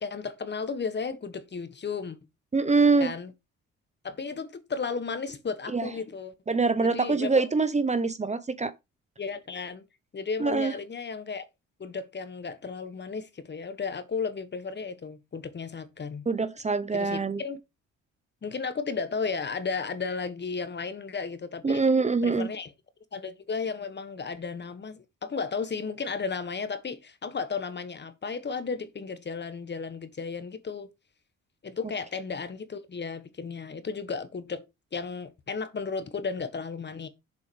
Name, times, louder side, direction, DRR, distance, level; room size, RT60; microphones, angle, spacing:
voice 1, 0.0-2.2 3.0-3.3 4.0-6.3 6.8-7.4 9.2-9.8 10.1-11.4 11.8-16.2 16.9-17.6 18.4-21.8 22.2-22.7 23.1-30.9 31.6-34.6 34.9-37.1, left 5 dB, 35° left, 1.4 m, -34 dB
voice 2, 2.5-3.1 5.7-5.9 6.5-8.7 10.4-10.7 16.3-17.4 21.6-22.5, right 4 dB, 25° right, 0.8 m, -24 dB
7.3 x 4.6 x 6.3 m
cardioid pair, 90°, 30 cm